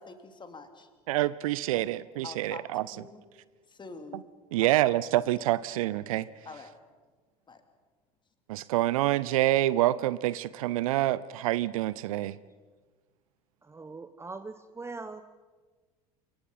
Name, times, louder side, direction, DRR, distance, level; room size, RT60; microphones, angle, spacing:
voice 1, 0.0-0.9 1.7-1.9 2.2-3.2 3.7-4.2 4.6-4.9 6.4-6.7 7.5-7.6, left 4 dB, 25° left, 7 dB, 2.8 m, -46 dB
voice 2, 1.1-2.8 4.5-6.3 8.5-12.4, right 15 dB, 65° right, 19 dB, 0.6 m, -27 dB
voice 3, 13.6-15.2, right 3 dB, 15° right, 11 dB, 0.9 m, -41 dB
27.5 x 23.0 x 5.6 m, 1.4 s
figure-of-eight pair, 70°, 20 cm